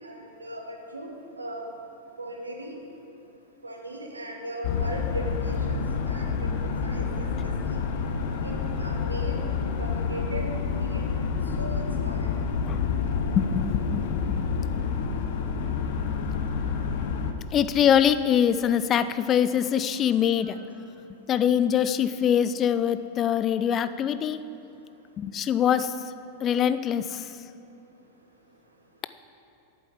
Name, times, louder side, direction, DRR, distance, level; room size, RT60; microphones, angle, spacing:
voice 1, 0.0-1.7 2.2-2.8 3.6-5.8 6.1-7.8 8.4-9.4 9.8-10.4 10.8-11.1 11.6-12.3 20.4-20.6, equal, 80° right, 2 dB, 1.3 m, -38 dB
sound 1, 4.6-17.3, left 5 dB, 50° left, 0.8 m, -28 dB
voice 2, 13.4-14.3 17.5-20.6 21.3-24.4 25.2-25.9 26.4-27.3, left 9 dB, 30° left, 13 dB, 0.4 m, -23 dB
8.4 x 8.2 x 7.5 m, 2.8 s
figure-of-eight pair, 90°, 0 cm